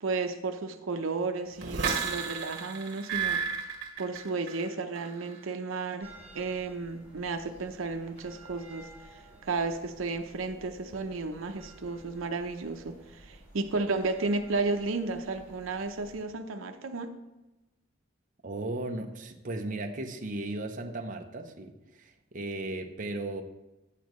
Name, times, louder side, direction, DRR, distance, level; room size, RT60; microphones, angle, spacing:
voice 1, 0.0-3.4 4.0-17.1, right 3 dB, 85° right, 6 dB, 0.7 m, -33 dB
sound 1, 1.6-4.7 5.0-5.4, right 6 dB, 55° right, 1.5 m, -32 dB
sound 2, 6.0-16.2, right 1 dB, 35° left, 2.3 m, -54 dB
voice 2, 18.4-23.4, right 2 dB, 40° right, 3 dB, 0.7 m, -36 dB
9.1 x 8.4 x 3.1 m, 1.0 s
head